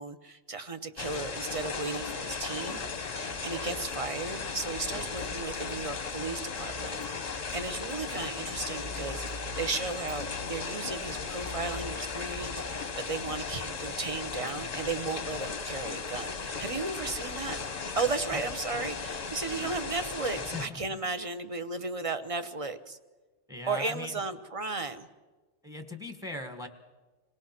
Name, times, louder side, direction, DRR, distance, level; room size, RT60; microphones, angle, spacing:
voice 1, 0.0-2.8 3.1-17.6 17.9-23.0 23.7-25.1, right 3 dB, 30° right, 9 dB, 0.9 m, -35 dB
sound 1, 1.0-20.7, left 4 dB, 35° left, 0.9 m, -36 dB
sound 2, 4.2-5.4 5.6-7.2 7.5-15.6, equal, 75° right, 6.7 m, -66 dB
voice 2, 20.3-21.0 23.5-24.2 25.6-26.7, left 2 dB, 5° right, 6 dB, 1.5 m, -40 dB
26.0 x 18.5 x 6.0 m, 1.3 s
omnidirectional pair, 1.3 m